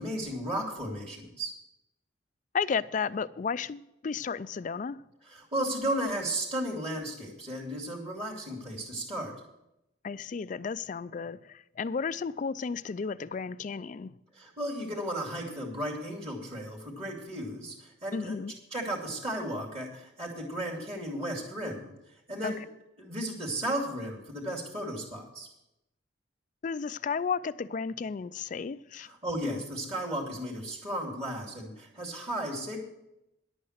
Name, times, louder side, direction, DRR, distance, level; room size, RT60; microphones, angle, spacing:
voice 1, 0.0-1.5 5.3-9.3 14.3-17.7 18.0-18.4 18.7-21.9 22.3-22.6 23.0-25.5 29.1-32.8, right 1 dB, 30° right, 2.4 m, -34 dB
voice 2, 2.5-5.0 10.0-14.1 18.1-18.5 22.4-22.5 26.6-29.1, left 5 dB, 40° left, 0.3 m, -33 dB
11.0 x 8.6 x 6.4 m
head